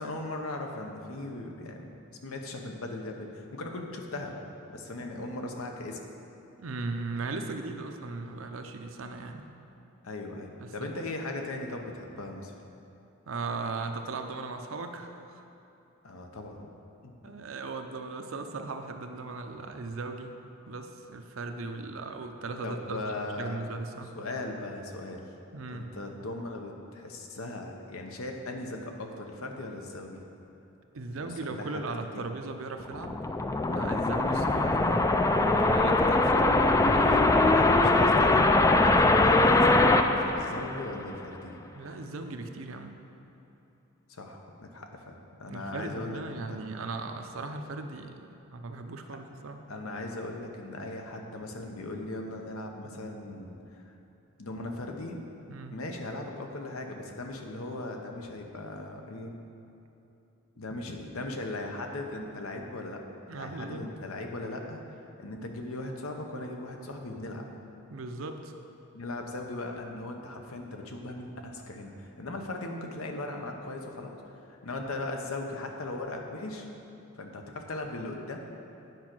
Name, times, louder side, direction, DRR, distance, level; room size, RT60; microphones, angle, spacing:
voice 1, 0.0-1.9 2.2-4.3 4.7-6.0 10.0-12.5 16.0-16.7 17.0-17.3 22.6-23.6 24.2-25.2 25.7-30.2 31.2-31.8 32.1-32.3 37.4-39.0 39.2-41.5 44.1-46.5 49.7-53.9 54.4-55.2 55.7-59.4 60.6-63.0 63.3-67.5 68.9-76.7 77.2-78.4, left 2 dB, 85° left, 3 dB, 0.9 m, -38 dB
voice 2, 6.6-9.5 10.6-11.1 13.3-15.4 17.2-20.4 20.7-24.1 25.5-26.0 30.9-33.2 33.7-37.7 41.7-42.9 45.5-49.6 55.5-55.8 63.3-63.9 67.9-68.5, right 3 dB, 70° right, 6 dB, 0.6 m, -38 dB
sound 1, 32.8-41.2, left 2 dB, 15° left, 0.3 m, -22 dB
9.3 x 5.0 x 6.1 m, 2.8 s
head